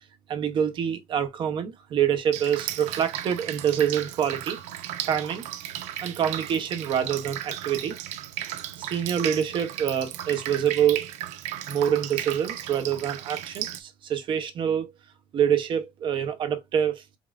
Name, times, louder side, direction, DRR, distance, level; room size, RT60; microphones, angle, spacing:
voice 1, 0.3-4.6 5.0-8.0 8.5-11.1 11.7-14.9 15.3-17.0, right 9 dB, 45° right, 0.7 m, -26 dB
Drip, 2.3-13.8, right 12 dB, 85° right, 0.5 m, -35 dB
5.3 x 2.4 x 2.3 m
cardioid pair, 155°, 12 cm